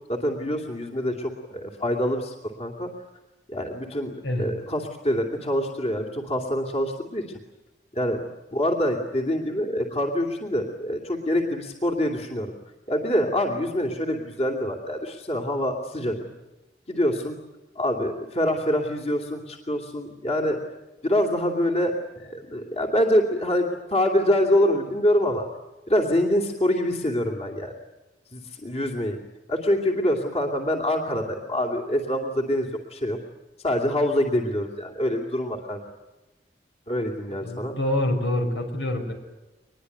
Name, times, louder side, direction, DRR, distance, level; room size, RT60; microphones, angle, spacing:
voice 1, 0.1-2.9 3.5-7.2 7.9-8.2 8.5-12.5 12.9-16.2 16.9-17.4 17.8-20.6 21.0-25.5 25.9-27.7 28.3-29.2 29.5-33.2 33.6-35.8 36.9-37.7, left 1 dB, 35° left, 2 dB, 2.7 m, -25 dB
voice 2, 37.4-39.1, left 1 dB, 85° left, 5 dB, 5.8 m, -26 dB
24.0 x 21.5 x 9.4 m, 1.1 s
head